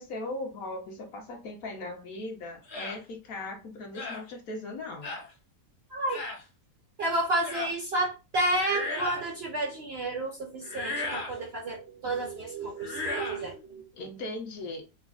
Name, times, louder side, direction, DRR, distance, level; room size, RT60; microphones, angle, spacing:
voice 1, 0.0-5.1 13.9-14.8, left 2 dB, 65° left, 1.2 m, -38 dB
sound 1, 2.7-3.0 3.9-4.2 5.0-5.3 6.1-6.4 7.4-7.8 8.5-9.3 10.6-11.4 12.8-13.4, left 2 dB, 40° left, 0.8 m, -35 dB
voice 2, 5.9-6.2 7.0-13.9, right 1 dB, 60° right, 0.6 m, -31 dB
5.0 x 2.0 x 2.4 m
omnidirectional pair, 1.7 m